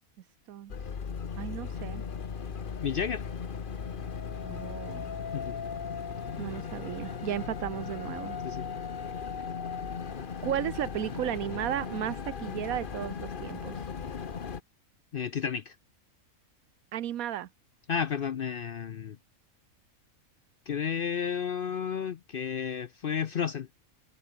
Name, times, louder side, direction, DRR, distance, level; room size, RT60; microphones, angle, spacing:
sound 1, 0.7-14.6, left 6 dB, 40° left, 1.1 m, -37 dB
voice 1, 1.4-2.0 4.4-5.1 6.4-8.4 10.4-13.8 16.9-17.5, right 11 dB, 80° right, 1.2 m, -34 dB
voice 2, 2.8-3.2 5.3-5.6 8.4-8.7 15.1-15.7 17.9-19.2 20.7-23.7, left 7 dB, 55° left, 0.6 m, -32 dB
omnidirectional pair, 1.5 m